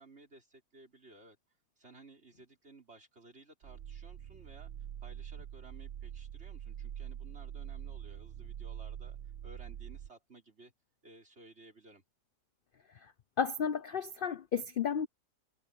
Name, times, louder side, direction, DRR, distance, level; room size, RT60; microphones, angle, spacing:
voice 1, 0.0-1.4 1.8-4.7 5.0-9.2 9.4-10.7 11.0-12.0, right 2 dB, 40° right, 5.1 m, -57 dB
sound 1, 3.6-10.1, right 10 dB, 60° right, 0.7 m, -44 dB
voice 2, 13.4-15.1, left 7 dB, 65° left, 0.5 m, -32 dB
omnidirectional pair, 1.7 m